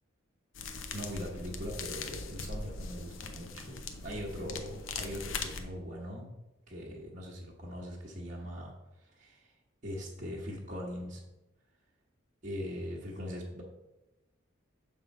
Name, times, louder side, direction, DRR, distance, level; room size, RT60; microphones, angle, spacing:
sound 1, 0.5-5.6, left 4 dB, 90° left, 0.7 m, -40 dB
voice 1, 0.7-6.3 6.7-8.7 9.0-9.5 9.8-11.2 12.4-13.6, equal, 40° right, -4 dB, 1.0 m, -41 dB
6.9 x 3.6 x 5.3 m, 0.98 s
head